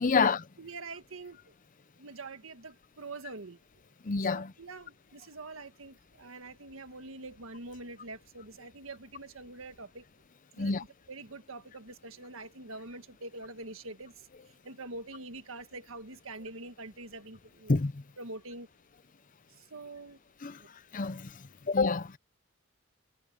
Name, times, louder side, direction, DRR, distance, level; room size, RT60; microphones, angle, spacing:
voice 1, 0.0-0.4 4.1-4.5 10.6-10.8 17.7-18.0 20.4-20.6 20.9-21.3 21.7-22.2, left 4 dB, 40° left, 0.6 m, -27 dB
voice 2, 0.6-1.5 2.0-3.6 4.3-10.0 10.6-14.3 14.6-17.8 18.2-18.7 19.5-20.2 20.6-20.7, right 2 dB, 80° right, 1.6 m, -45 dB
head